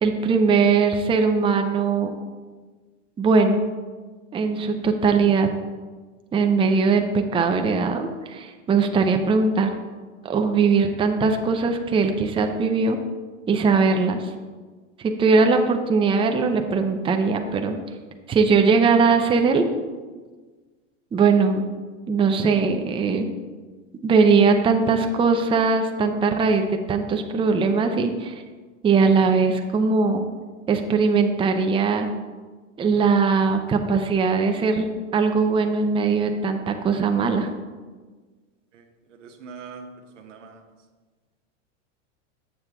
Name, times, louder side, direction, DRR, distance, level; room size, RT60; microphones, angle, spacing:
voice 1, 0.0-2.1 3.2-3.6 4.3-5.5 6.3-9.7 10.2-13.0 13.5-14.3 15.0-17.8 18.3-19.7 21.1-21.6 22.1-23.3 24.0-28.3 28.8-30.2 30.7-32.1 32.8-34.9 35.1-37.5, right 4 dB, 15° right, 5 dB, 0.5 m, -20 dB
voice 2, 38.7-39.9 40.1-40.6, right 5 dB, 90° right, 4 dB, 1.1 m, -43 dB
7.5 x 6.7 x 3.5 m, 1.4 s
hypercardioid pair, 110°, 36 cm